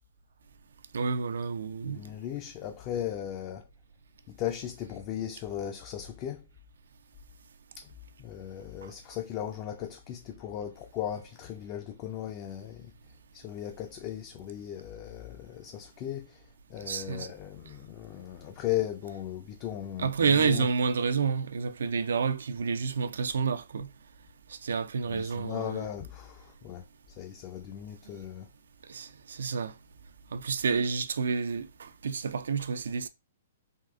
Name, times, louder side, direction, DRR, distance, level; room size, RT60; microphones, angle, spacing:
voice 1, 0.9-2.0 16.9-17.3 20.0-23.9 24.5-25.9 28.9-29.7 30.3-33.1, right 5 dB, 80° right, 0.3 m, -29 dB
voice 2, 1.8-3.7 4.4-6.5 7.8-7.9 8.2-12.9 13.3-16.4 16.7-20.7 25.1-26.8 27.2-28.5, left 11 dB, 35° left, 0.3 m, -37 dB
3.6 x 2.4 x 2.3 m
hypercardioid pair, 140°, 0 cm